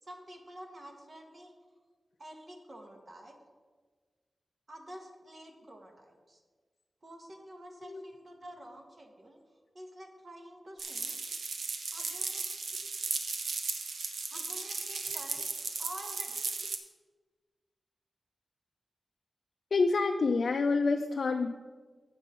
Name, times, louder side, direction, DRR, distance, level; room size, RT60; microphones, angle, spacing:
voice 1, 0.0-1.5 2.2-3.4 4.7-6.4 7.0-9.4 9.7-11.2 11.9-12.6 14.3-15.5 15.8-16.4, right 1 dB, 35° right, 3 dB, 1.1 m, -49 dB
sound 1, 10.8-16.8, right 4 dB, 80° right, 0.8 m, -36 dB
voice 2, 19.7-21.5, left 4 dB, 65° left, 4 dB, 0.4 m, -27 dB
8.1 x 5.4 x 6.7 m, 1.4 s
wide cardioid pair, 155°, 0 cm